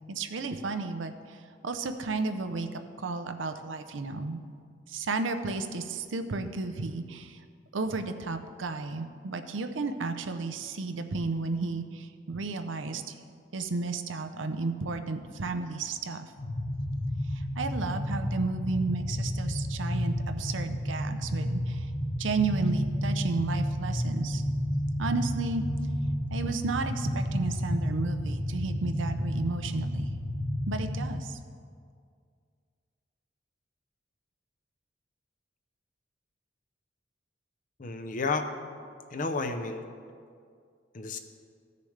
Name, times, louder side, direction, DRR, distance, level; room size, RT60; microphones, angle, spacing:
voice 1, 0.1-1.4 1.6-2.7 3.0-4.4 4.9-7.4 7.7-13.1 13.5-16.3 17.3-21.9 22.2-24.4 25.0-25.6 26.3-30.0 30.7-31.4, right 3 dB, 85° right, 8 dB, 0.6 m, -33 dB
sound 1, 16.4-31.1, equal, 80° left, 1.8 m, -31 dB
voice 2, 37.8-38.5 39.1-39.8 40.9-41.2, left 3 dB, 45° left, 7 dB, 0.6 m, -31 dB
16.0 x 6.7 x 3.3 m, 2.2 s
head